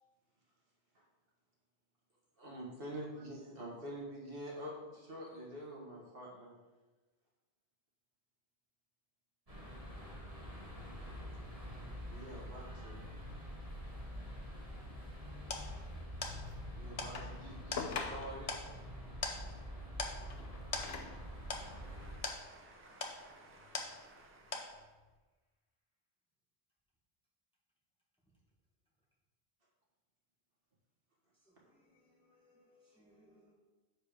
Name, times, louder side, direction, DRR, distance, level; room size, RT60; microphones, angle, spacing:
voice 1, 2.4-6.5 12.1-13.0 16.8-18.5, right 1 dB, 55° right, 1.9 m, -46 dB
sound 1, 9.5-22.2, equal, 35° right, 1.9 m, -46 dB
sound 2, 15.5-24.3 24.5-25.1, left 3 dB, 35° left, 0.8 m, -44 dB
sound 3, 17.1-18.6 20.1-21.3 22.1-22.2, left 5 dB, 70° left, 1.0 m, -43 dB
voice 2, 21.0-24.9, right 2 dB, 20° right, 0.4 m, -60 dB
voice 3, 31.4-33.5, left 1 dB, 5° left, 1.8 m, -68 dB
6.6 x 4.9 x 5.1 m
omnidirectional pair, 1.1 m